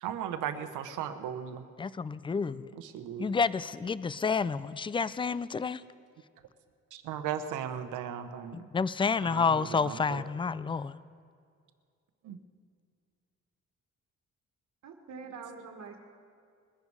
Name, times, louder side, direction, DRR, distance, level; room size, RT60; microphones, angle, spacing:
voice 1, 0.0-1.6 2.7-3.3 6.9-8.7 9.2-10.2 12.2-12.4, right 9 dB, 90° right, 1.0 m, -37 dB
voice 2, 1.8-2.7 3.2-5.8 8.5-11.0, left 5 dB, 15° left, 0.4 m, -29 dB
voice 3, 14.8-16.0, right 5 dB, 65° right, 1.7 m, -44 dB
21.5 x 11.0 x 4.8 m
cardioid pair, 90°, 30 cm